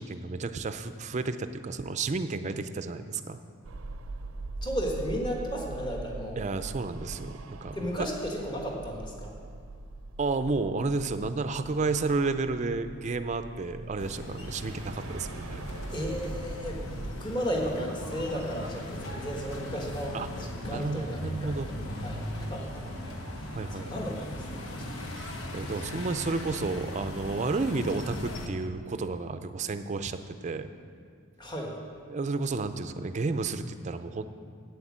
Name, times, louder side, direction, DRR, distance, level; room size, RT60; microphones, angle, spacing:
voice 1, 0.0-3.4 6.4-8.1 10.2-15.6 20.1-20.3 20.6-21.7 23.5-23.9 25.2-30.7 32.1-34.2, right 3 dB, 35° right, 10 dB, 0.4 m, -31 dB
sound 1, 3.6-17.1, right 2 dB, 90° right, 0.5 m, -42 dB
voice 2, 4.6-6.4 7.7-9.3 15.9-24.2 24.5-25.1 31.4-31.7, equal, 20° left, -1 dB, 1.4 m, -35 dB
sound 2, 14.0-28.5, left 1 dB, 90° left, 1.2 m, -38 dB
8.4 x 8.0 x 7.4 m, 2.2 s
head